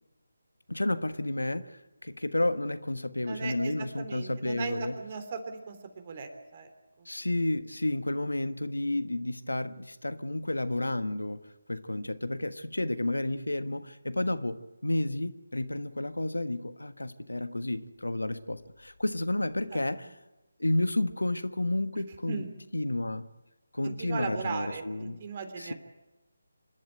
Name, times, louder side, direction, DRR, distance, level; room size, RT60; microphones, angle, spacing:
voice 1, 0.7-4.9 7.0-20.1 20.6-22.4 22.7-23.2 23.7-25.2 25.6-25.7, left 1 dB, 80° left, 11 dB, 1.4 m, -31 dB
voice 2, 3.3-6.7 19.7-19.8 22.3-22.5 23.8-25.7, right 5 dB, 35° right, 8 dB, 3.3 m, -38 dB
27.0 x 12.5 x 9.2 m, 1.0 s
figure-of-eight pair, 155°, 0 cm